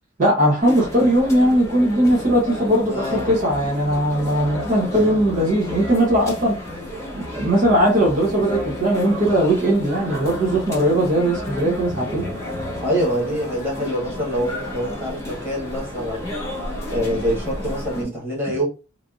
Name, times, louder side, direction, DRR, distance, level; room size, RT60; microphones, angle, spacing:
voice 1, 0.2-6.6 7.1-12.3, right 1 dB, 40° right, -4 dB, 0.8 m, -19 dB
sound 1, 0.6-18.1, left 1 dB, 15° left, 0.9 m, -31 dB
voice 2, 2.8-3.3 12.8-16.3 16.9-18.6, equal, 10° right, -6 dB, 1.4 m, -25 dB
3.3 x 2.5 x 2.4 m, 0.32 s
head